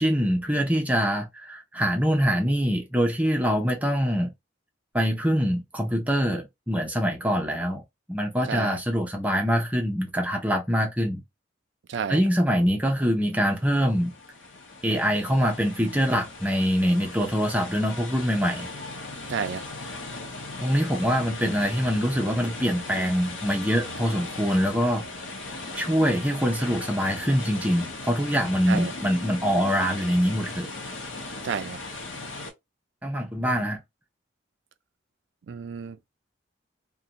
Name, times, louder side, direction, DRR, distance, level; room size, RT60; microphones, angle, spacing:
voice 1, 0.0-4.3 4.9-7.8 8.1-11.2 12.1-14.1 14.8-18.7 20.6-25.0 25.8-30.7 33.0-33.8, equal, 10° right, 0.5 m, -24 dB
voice 2, 8.5-8.8 11.9-12.3 19.3-19.6 28.7-28.9 31.4-31.8 35.5-36.1, right 6 dB, 70° right, 0.4 m, -31 dB
sound 1, 13.5-32.5, left 2 dB, 80° left, 0.7 m, -38 dB
2.5 x 2.2 x 2.8 m
head